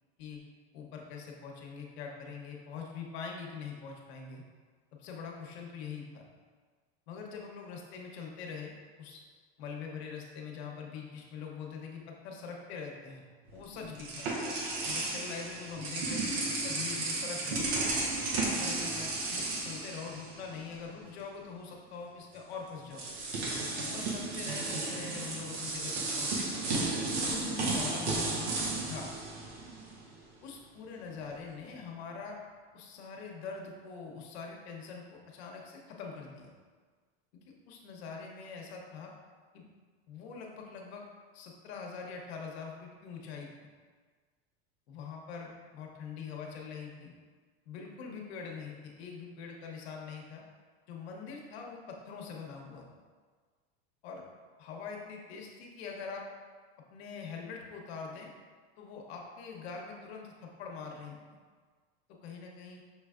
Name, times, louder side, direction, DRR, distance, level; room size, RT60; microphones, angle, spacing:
voice 1, 0.7-4.4 5.0-6.2 7.1-8.7 9.0-9.2 9.6-13.2 13.5-14.3 14.8-17.7 18.5-23.1 23.8-26.5 27.1-29.1 30.4-32.4 32.7-36.5 37.3-39.1 39.5-39.7 40.1-41.0 41.3-43.5 44.9-47.1 47.7-50.4 50.9-52.9 54.0-54.2 54.6-56.3 56.9-58.3 58.8-61.2 62.2-62.8, left 5 dB, 75° left, 0 dB, 0.9 m, -43 dB
sound 1, 13.5-20.7 21.0-21.2 22.3-22.4 22.9-30.1, right 2 dB, 85° right, 0.9 m, -34 dB
6.0 x 3.3 x 2.4 m, 1.5 s
supercardioid pair, 115°, 32 cm